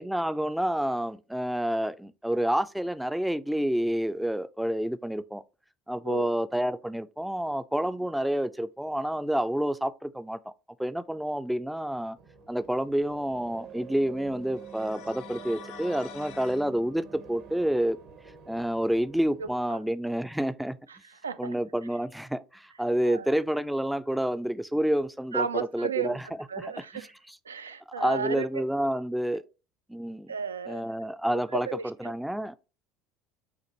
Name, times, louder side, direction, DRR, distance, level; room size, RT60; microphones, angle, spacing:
voice 1, 0.0-5.4 5.9-10.4 10.8-12.2 12.5-18.0 18.5-20.8 21.4-26.3 26.6-27.4 27.9-29.4 29.9-30.3 30.7-32.5, right 1 dB, 5° right, 0.3 m, -29 dB
sound 1, 12.2-19.5, right 6 dB, 55° right, 0.8 m, -47 dB
sound 2, 14.5-16.7, left 9 dB, 60° left, 0.5 m, -46 dB
voice 2, 19.4-19.8 20.9-21.5 23.0-23.3 25.3-26.2 26.5-27.1 27.5-28.5 30.3-30.8 31.7-32.1, right 6 dB, 80° right, 0.3 m, -34 dB
6.0 x 2.5 x 2.9 m
figure-of-eight pair, 65°, 0 cm